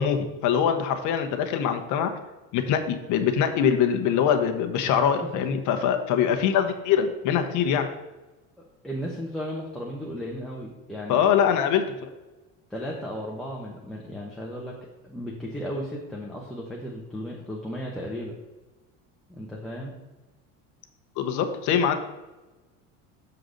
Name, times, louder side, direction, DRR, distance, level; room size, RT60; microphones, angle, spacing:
voice 1, 0.0-2.1 2.5-7.9 11.1-11.8 21.2-21.9, left 8 dB, 55° left, 6 dB, 0.9 m, -23 dB
voice 2, 8.8-11.2 12.7-14.7 15.0-18.3 19.3-19.9, equal, ahead, -3 dB, 0.9 m, -35 dB
6.7 x 3.9 x 6.4 m, 1.1 s
cardioid pair, 140°, 35 cm